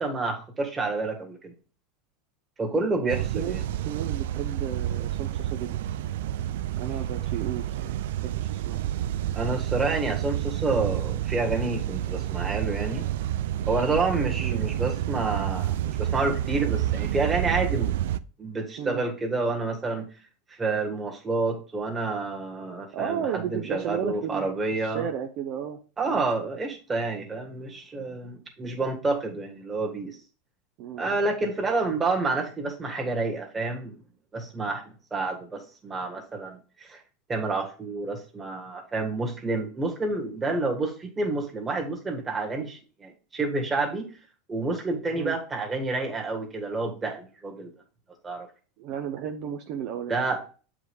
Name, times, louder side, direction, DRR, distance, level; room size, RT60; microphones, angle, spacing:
voice 1, 0.0-1.5 2.6-3.6 9.4-13.1 13.7-17.9 18.4-20.1 20.6-25.1 26.0-30.2 31.0-34.0 34.3-34.8 35.1-37.0 37.3-44.1 44.5-47.7 48.2-48.5 50.1-50.4, right 3 dB, 15° right, 2 dB, 1.7 m, -29 dB
voice 2, 2.8-3.6 3.9-5.8 6.8-8.8 14.4-14.6 18.8-19.0 22.9-24.5 24.8-25.8 26.0-26.2 30.8-31.0 45.1-45.4 48.8-50.2, right 9 dB, 50° right, 5 dB, 0.7 m, -34 dB
sound 1, 3.1-18.2, right 12 dB, 80° right, 0.4 m, -29 dB
7.8 x 4.9 x 3.6 m, 0.36 s
supercardioid pair, 145°, 0 cm